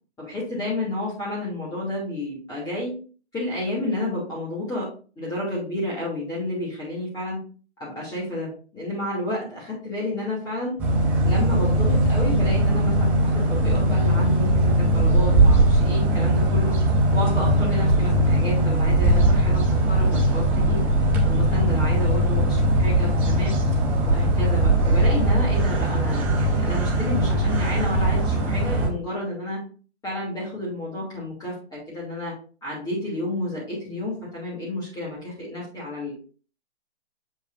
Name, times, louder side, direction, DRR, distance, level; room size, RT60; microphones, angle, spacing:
voice 1, 0.2-2.9 3.3-4.9 5.2-7.4 7.8-10.7 11.2-16.8 17.1-20.8 21.2-23.6 24.0-29.6 30.0-32.3 32.6-36.1, left 1 dB, 10° left, -7 dB, 2.8 m, -30 dB
sound 1, 10.8-28.9, right 1 dB, 5° right, 0.4 m, -20 dB
7.4 x 6.6 x 2.6 m, 0.38 s
hypercardioid pair, 140°, 34 cm